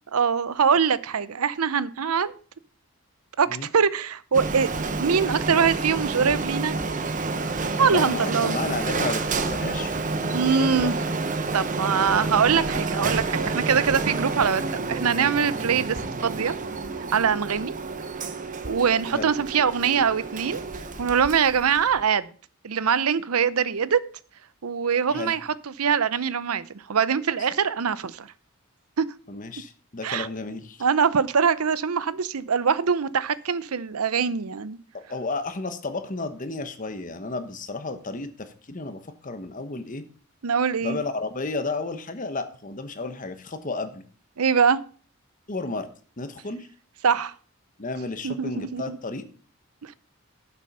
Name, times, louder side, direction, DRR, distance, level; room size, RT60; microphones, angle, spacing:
voice 1, 0.1-2.3 3.4-4.7 5.0-6.8 7.8-8.5 10.3-10.9 11.5-16.5 17.1-17.7 18.6-20.6 21.0-22.3 22.6-24.0 24.6-25.4 25.8-28.3 29.0-29.1 30.0-30.3 30.8-34.8 40.4-41.0 44.4-44.8 47.0-47.3 48.2-49.0 49.8-49.9, right 6 dB, 90° right, 0.7 m, -23 dB
Printer, 4.3-22.0, right 3 dB, 35° right, 0.9 m, -29 dB
voice 2, 7.9-11.0 19.1-19.3 25.1-25.3 29.3-30.9 34.9-40.0 40.8-44.0 45.5-45.9 46.2-46.7 47.8-49.2, left 3 dB, 35° left, 1.1 m, -32 dB
11.0 x 7.1 x 5.5 m
head